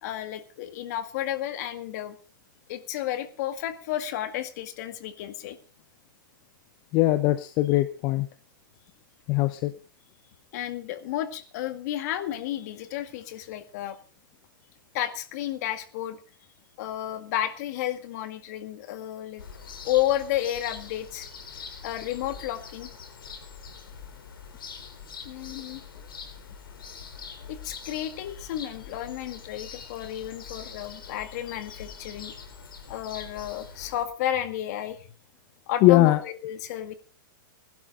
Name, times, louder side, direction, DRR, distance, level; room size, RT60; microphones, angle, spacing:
voice 1, 0.0-2.2 2.7-5.6 10.5-14.0 14.9-16.2 16.8-19.4 19.8-21.3 21.8-22.9 25.2-25.8 27.5-32.3 32.9-35.1 35.7-36.9, left 12 dB, 50° left, 10 dB, 2.0 m, -32 dB
voice 2, 6.9-8.3 9.3-9.7 35.8-36.2, left 16 dB, 35° left, 12 dB, 0.9 m, -21 dB
sound 1, 19.4-34.1, left 6 dB, 85° left, 3.7 m, -43 dB
20.5 x 12.0 x 3.9 m, 0.34 s
hypercardioid pair, 145°, 11 cm